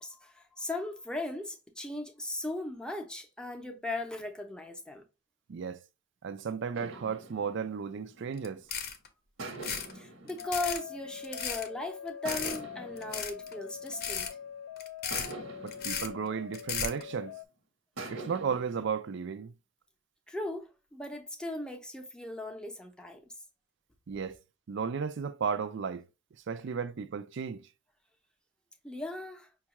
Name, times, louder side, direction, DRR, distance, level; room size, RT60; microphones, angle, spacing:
voice 1, 0.0-5.0 9.9-14.4 20.3-23.2 28.8-29.5, left 2 dB, 5° left, 0.6 m, -38 dB
voice 2, 6.2-8.7 15.6-17.4 18.1-19.5 24.1-24.4 24.7-26.1 26.5-27.7, right 6 dB, 60° right, 0.4 m, -34 dB
sound 1, 6.7-8.8 9.4-11.6 12.2-14.5 15.1-17.3 18.0-18.9, right 2 dB, 80° right, 1.1 m, -45 dB
sound 2, 8.4-8.5 8.7-9.1 9.5-9.9 10.3-10.8 11.2-11.7 12.3-12.6 13.0-13.5 13.9-14.3 14.8-15.3 15.7-16.1 16.5-17.0, left 7 dB, 50° left, 0.6 m, -35 dB
sound 3, 10.4-17.5, left 8 dB, 85° left, 0.3 m, -44 dB
5.4 x 2.4 x 2.9 m
head